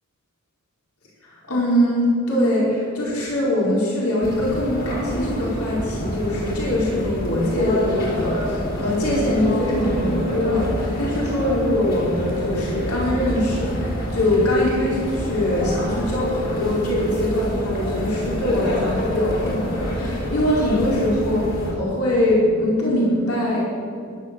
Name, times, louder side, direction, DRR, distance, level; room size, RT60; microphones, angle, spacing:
voice 1, 1.3-21.5 21.7-23.6, left 1 dB, 80° left, -5 dB, 5.1 m, -22 dB
sound 1, 4.2-21.7, equal, 45° left, 3.8 m, -27 dB
13.5 x 12.5 x 7.8 m, 2.4 s
head